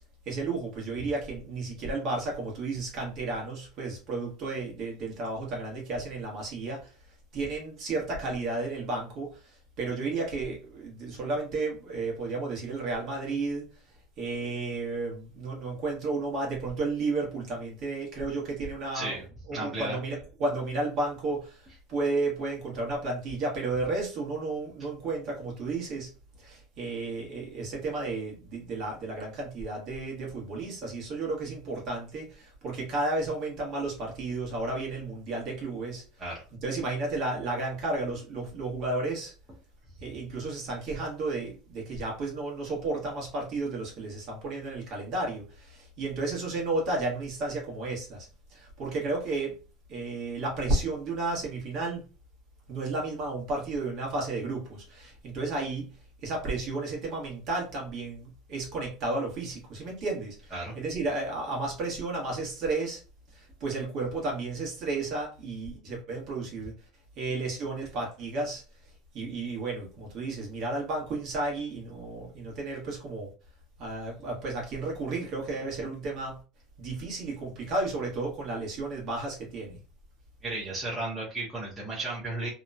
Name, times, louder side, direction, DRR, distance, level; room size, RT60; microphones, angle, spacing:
voice 1, 0.2-6.9 7.3-13.7 14.2-26.1 26.4-36.4 36.6-39.3 40.0-49.6 49.9-52.0 52.7-55.9 56.2-63.0 63.3-66.7 67.2-68.6 69.1-73.3 73.8-76.4 76.8-79.8, right 3 dB, 40° right, 1.1 m, -33 dB
voice 2, 19.5-20.0 36.2-36.4 60.5-60.7 80.4-82.5, right 2 dB, 15° right, 0.7 m, -34 dB
2.9 x 2.1 x 2.4 m
cardioid pair, 170°, 0 cm